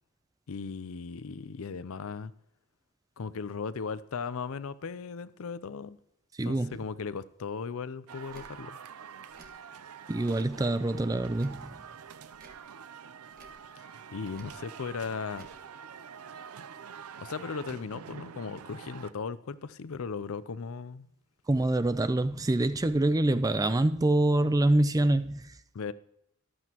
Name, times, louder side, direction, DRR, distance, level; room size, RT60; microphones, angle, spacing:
voice 1, 0.5-2.3 3.2-6.0 6.4-8.8 13.8-15.5 17.2-21.1 25.7-25.9, left 5 dB, 65° left, 0.5 m, -37 dB
voice 2, 6.4-6.8 10.1-11.7 21.5-25.5, right 1 dB, 15° right, 0.4 m, -25 dB
sound 1, 8.1-19.1, right 7 dB, 85° right, 0.6 m, -46 dB
Tick / Tick-tock, 8.3-8.5 9.3-9.5 10.3-10.6 11.3-11.6 12.3-12.6 13.3-13.6 14.3-14.6 15.3-15.6, right 2 dB, 40° right, 1.5 m, -54 dB
14.0 x 11.0 x 2.9 m
head